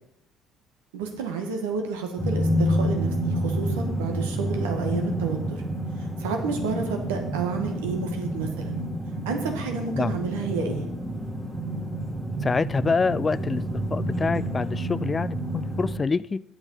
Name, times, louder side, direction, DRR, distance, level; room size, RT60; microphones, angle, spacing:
voice 1, 0.9-5.6 6.2-8.8 9.2-10.9, right 5 dB, 90° right, 4 dB, 1.5 m, -30 dB
sound 1, 2.2-16.0, equal, 5° right, 2.2 m, -29 dB
voice 2, 12.4-13.6 13.9-16.4, left 4 dB, 30° left, 18 dB, 0.3 m, -26 dB
8.1 x 7.1 x 5.6 m, 0.85 s
hypercardioid pair, 65°, 0 cm